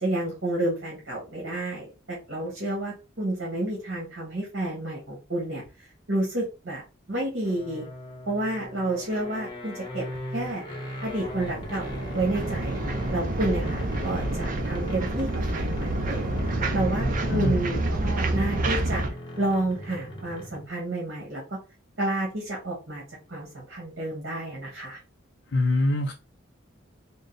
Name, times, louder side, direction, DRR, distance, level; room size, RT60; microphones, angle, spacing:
voice 1, 0.0-5.6 6.1-6.8 7.1-7.9 8.3-10.0 10.3-10.6 11.0-12.8 13.1-16.3 16.7-19.0 19.4-21.6 22.0-23.0 23.3-25.0, right 1 dB, 60° right, 1.4 m, -30 dB
sound 1, 7.4-20.8, equal, 25° left, 0.8 m, -39 dB
sound 2, 11.0-19.1, right 2 dB, 40° right, 0.5 m, -28 dB
voice 2, 25.5-26.1, left 2 dB, 60° left, 0.5 m, -24 dB
3.8 x 2.1 x 3.8 m
head